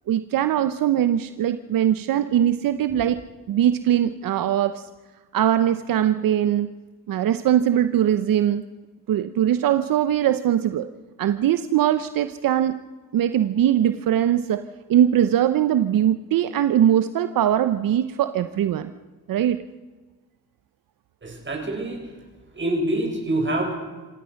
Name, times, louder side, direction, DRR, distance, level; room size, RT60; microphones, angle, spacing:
voice 1, 0.1-3.2 3.5-4.8 5.3-6.7 7.1-8.6 9.1-10.9 11.2-12.8 13.1-14.6 14.9-18.9 19.3-19.6, right 10 dB, 80° right, 11 dB, 0.9 m, -21 dB
voice 2, 21.2-22.0 22.6-23.7, right 1 dB, 35° right, 2 dB, 7.2 m, -25 dB
26.5 x 17.0 x 6.5 m, 1.3 s
cardioid pair, 85°, 34 cm